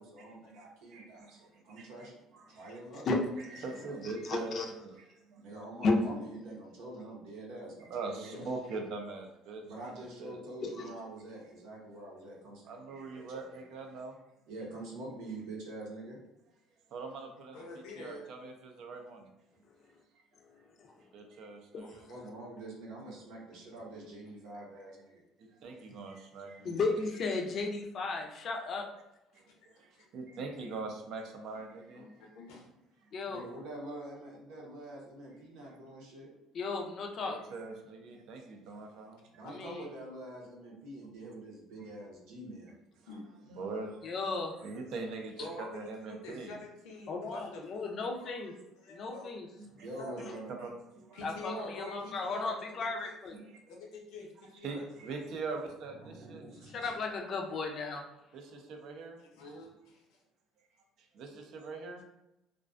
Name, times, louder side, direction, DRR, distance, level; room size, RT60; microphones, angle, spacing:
voice 1, 0.0-3.1 3.6-4.0 5.4-8.5 9.6-13.7 14.5-16.2 22.1-25.3 33.3-36.3 39.3-42.8 49.7-50.6 55.8-56.9, right 1 dB, 90° right, -3 dB, 0.8 m, -46 dB
voice 2, 0.9-2.7 3.6-4.6 4.8-4.9 5.3-5.5 7.9-9.6 10.0-10.4 12.6-14.2 16.9-17.7 18.0-19.3 21.1-22.1 25.4-26.8 28.1-28.2 29.3-29.5 29.7-32.3 37.3-39.5 43.0-43.1 43.5-44.1 44.6-45.5 45.7-46.6 48.6-48.7 49.8-49.9 50.6-51.3 51.8-51.9 53.4-53.6 54.6-56.4 58.3-59.2 61.1-62.0, right 3 dB, 65° right, 3 dB, 0.4 m, -42 dB
voice 3, 4.0-4.7 5.8-6.0 10.8-10.9 21.7-22.1 26.6-28.9 33.1-33.5 36.5-37.4 39.4-39.8 44.0-44.6 47.1-48.5 48.9-49.5 50.2-50.4 51.2-53.4 56.7-58.0, left 3 dB, 45° left, 2 dB, 0.4 m, -34 dB
voice 4, 17.5-18.3 30.0-30.1 31.9-32.1 32.3-32.7 43.1-43.2 45.4-47.9 48.2-48.4 48.8-49.3 50.0-50.2 51.1-52.5 52.8-53.1 53.7-54.9 59.3-60.0, left 2 dB, 90° left, 0 dB, 0.6 m, -45 dB
2.4 x 2.2 x 2.4 m, 0.88 s
cardioid pair, 130°, 0 cm